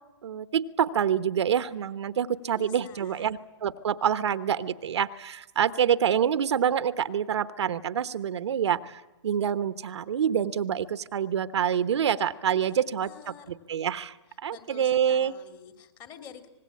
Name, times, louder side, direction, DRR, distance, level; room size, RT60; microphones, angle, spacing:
voice 1, 0.2-14.2 14.4-15.3, right 8 dB, 70° right, 13 dB, 1.1 m, -27 dB
voice 2, 2.5-3.3 12.6-13.6 14.5-16.5, left 8 dB, 30° left, 6 dB, 2.8 m, -48 dB
25.0 x 20.5 x 8.6 m, 1.0 s
hypercardioid pair, 130°, 15 cm